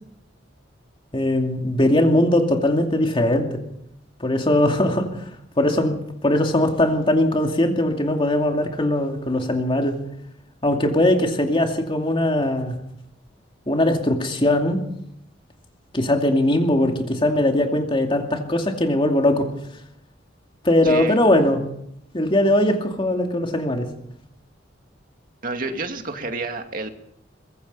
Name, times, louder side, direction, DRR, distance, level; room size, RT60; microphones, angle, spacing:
voice 1, 1.1-3.6 4.2-5.3 5.6-10.0 10.6-12.8 13.7-14.8 15.9-19.5 20.6-21.6 22.1-23.9, left 1 dB, 30° left, 3 dB, 2.5 m, -20 dB
voice 2, 20.8-21.2 25.4-26.9, right 3 dB, 45° right, 5 dB, 2.3 m, -29 dB
24.0 x 21.0 x 5.6 m, 0.76 s
head